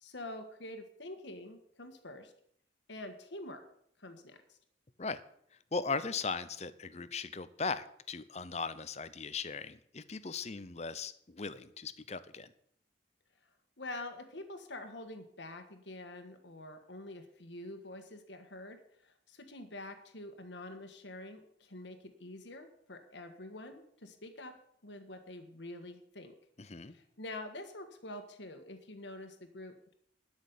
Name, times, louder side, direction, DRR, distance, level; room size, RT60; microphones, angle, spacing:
voice 1, 0.0-2.3 2.9-3.6 4.0-4.6 13.8-24.6 24.8-26.4 26.8-29.9, left 1 dB, 70° left, 7 dB, 1.6 m, -46 dB
voice 2, 5.7-12.5 26.6-27.0, left 4 dB, 35° left, 14 dB, 0.7 m, -38 dB
12.0 x 6.4 x 9.4 m, 0.68 s
head